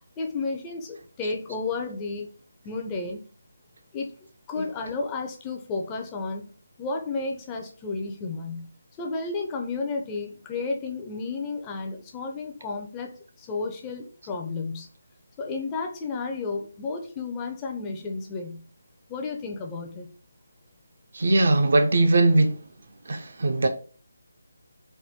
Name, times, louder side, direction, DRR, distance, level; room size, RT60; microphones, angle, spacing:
voice 1, 0.2-2.3 2.6-3.2 3.9-4.1 4.5-6.5 6.8-14.9 15.4-18.7 19.1-20.1, left 3 dB, 15° left, 0.5 m, -32 dB
voice 2, 21.1-22.6 23.1-23.7, right 2 dB, 60° right, 0.6 m, -20 dB
3.5 x 2.2 x 4.2 m
figure-of-eight pair, 160°, 0 cm